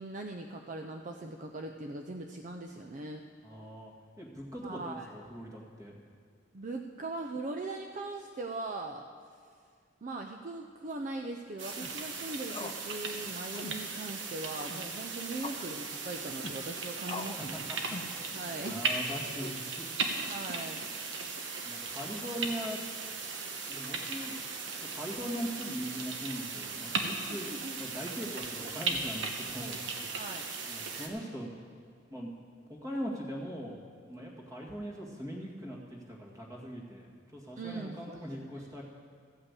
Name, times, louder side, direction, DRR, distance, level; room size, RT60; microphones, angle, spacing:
voice 1, 0.0-3.3 4.6-5.1 6.5-9.0 10.0-17.7 18.3-18.8 20.3-20.9 27.3-27.8 30.1-30.5 37.6-38.3 38.6-38.7, right 2 dB, 45° right, 3 dB, 0.5 m, -40 dB
voice 2, 3.4-3.9 4.2-5.9 17.4-19.9 21.6-22.8 23.7-24.3 24.7-27.5 27.8-30.2 30.6-31.5 32.1-32.3 32.7-33.8 34.1-38.8, equal, 20° right, -2 dB, 1.9 m, -41 dB
sound 1, 11.6-11.9 12.5-12.8 13.1-13.2 13.5-13.8 14.5-14.8 15.4-15.7 16.3-16.6 17.1-17.4 17.9-18.2 18.6-18.8 19.4-19.9, left 3 dB, 30° left, 0.5 m, -42 dB
sound 2, 11.6-31.1, right 4 dB, 80° right, 1.1 m, -37 dB
14.0 x 5.6 x 8.2 m, 2.1 s
head